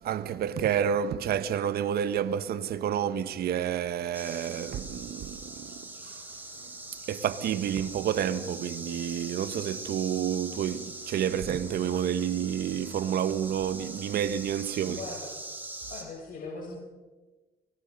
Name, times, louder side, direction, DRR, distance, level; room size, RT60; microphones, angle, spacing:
voice 1, 0.0-6.3 7.1-15.0, right 9 dB, 65° right, 1.3 m, -29 dB
sound 1, 4.1-16.0, right 2 dB, 10° right, 6.2 m, -42 dB
voice 2, 14.8-15.3 15.9-16.8, left 3 dB, 55° left, 6.9 m, -40 dB
25.0 x 24.0 x 5.4 m
cardioid pair, 80°, 17 cm